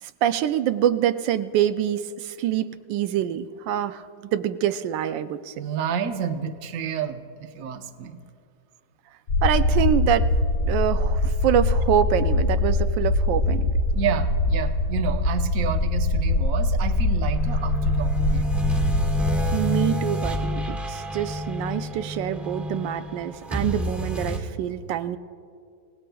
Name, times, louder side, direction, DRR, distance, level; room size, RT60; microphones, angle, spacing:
voice 1, 0.0-5.5 9.4-10.3 10.6-13.7 19.5-25.2, right 10 dB, 90° right, 11 dB, 1.3 m, -25 dB
voice 2, 5.6-8.2 13.9-18.6, right 7 dB, 55° right, 7 dB, 1.1 m, -30 dB
sound 1, 9.3-19.6, left 2 dB, 50° left, 1.0 m, -23 dB
sound 2, 17.3-24.4, left 1 dB, ahead, 1.3 m, -29 dB
28.5 x 17.5 x 2.3 m, 2.3 s
omnidirectional pair, 1.9 m